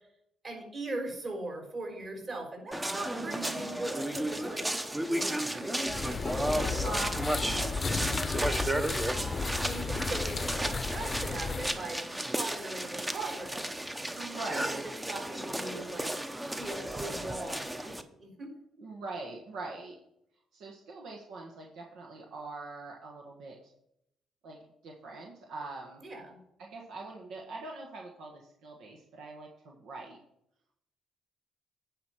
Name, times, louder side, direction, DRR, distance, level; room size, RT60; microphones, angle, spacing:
voice 1, 0.4-4.7 5.1-7.0 8.3-8.8 9.6-13.7 14.5-14.8 15.0-16.1 16.6-17.9 18.2-18.5 26.0-26.4, right 2 dB, 40° right, 1 dB, 4.1 m, -40 dB
sound 1, 2.7-18.0, right 1 dB, 10° right, 0.8 m, -34 dB
voice 2, 3.1-3.8 6.1-8.3 10.1-10.2 14.1-14.8 18.8-20.0 20.5-23.6 24.4-24.6 24.8-26.0 26.6-30.2, right 3 dB, 80° right, 0 dB, 1.4 m, -42 dB
sound 2, 5.9-11.8, left 4 dB, 35° left, 0.7 m, -34 dB
9.6 x 5.2 x 5.9 m, 0.77 s
cardioid pair, 90°, 0 cm